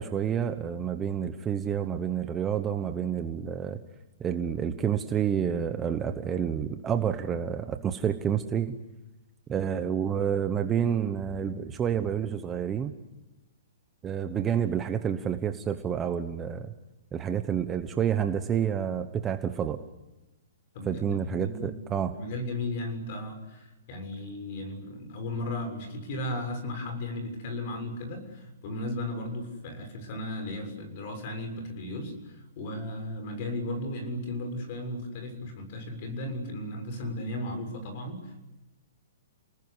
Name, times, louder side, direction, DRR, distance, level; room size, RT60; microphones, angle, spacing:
voice 1, 0.0-3.8 4.2-8.8 9.5-12.9 14.0-16.7 17.1-19.8 20.8-22.1, right 8 dB, 15° right, 7 dB, 1.0 m, -29 dB
voice 2, 20.7-21.8 22.1-38.4, left 1 dB, 35° left, 7 dB, 6.7 m, -35 dB
29.0 x 19.5 x 9.8 m, 1.0 s
hypercardioid pair, 170°, 0 cm